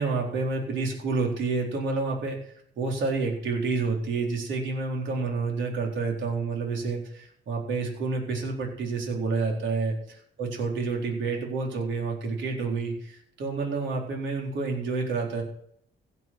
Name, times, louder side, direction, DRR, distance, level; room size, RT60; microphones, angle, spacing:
voice 1, 0.0-2.4 2.8-15.4, right 4 dB, 70° right, 0 dB, 4.3 m, -29 dB
16.0 x 7.9 x 6.2 m, 0.68 s
cardioid pair, 90°, 20 cm